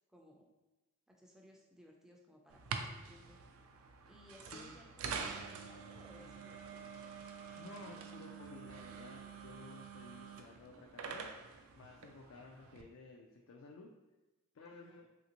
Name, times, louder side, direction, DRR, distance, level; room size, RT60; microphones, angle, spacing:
voice 1, 0.1-0.5 1.1-3.4 4.0-6.8 14.7-15.1, equal, ahead, 0 dB, 0.3 m, -61 dB
sound 1, 2.5-12.8, right 5 dB, 80° right, 0.3 m, -47 dB
voice 2, 4.4-4.7 7.6-11.3 11.8-13.9 14.5-15.1, left 3 dB, 70° left, 0 dB, 0.3 m, -54 dB
3.3 x 2.5 x 2.8 m, 1.1 s
head